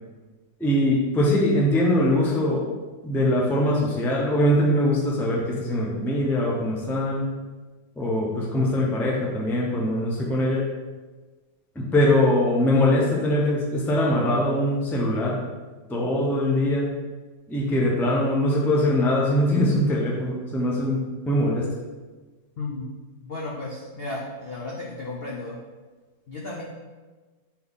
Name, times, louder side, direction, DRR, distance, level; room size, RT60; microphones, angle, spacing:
voice 1, 0.6-2.7 3.0-7.3 8.0-10.7 11.7-15.4 15.9-16.9 17.5-21.7, left 1 dB, 5° left, -4 dB, 0.4 m, -22 dB
voice 2, 23.2-25.6 26.3-26.6, left 2 dB, 60° left, -3 dB, 0.6 m, -34 dB
4.2 x 4.2 x 5.4 m, 1.3 s
omnidirectional pair, 2.0 m